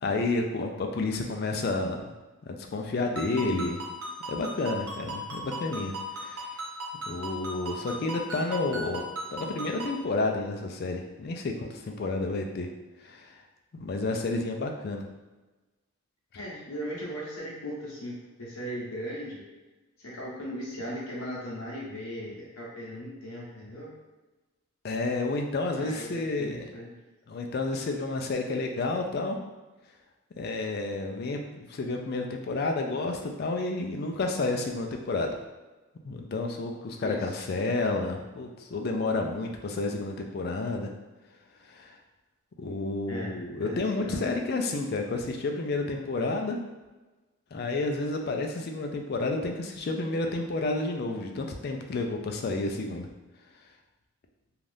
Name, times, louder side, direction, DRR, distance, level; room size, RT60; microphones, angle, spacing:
voice 1, 0.0-2.1 2.4-3.8 4.3-6.5 7.1-9.0 9.3-12.7 13.0-13.4 13.7-15.0 24.8-26.6 27.3-29.4 30.4-35.3 36.0-40.9 41.6-41.9 42.6-46.6 47.5-53.1, left 3 dB, 45° left, 3 dB, 0.3 m, -30 dB
Ringtone, 3.2-10.0, equal, 90° right, 0.8 m, -38 dB
voice 2, 16.3-19.4 20.0-23.9 25.7-27.0 37.0-37.4 43.1-43.3 43.6-44.3, equal, 75° left, -5 dB, 0.8 m, -38 dB
2.6 x 2.4 x 3.3 m, 1.2 s
head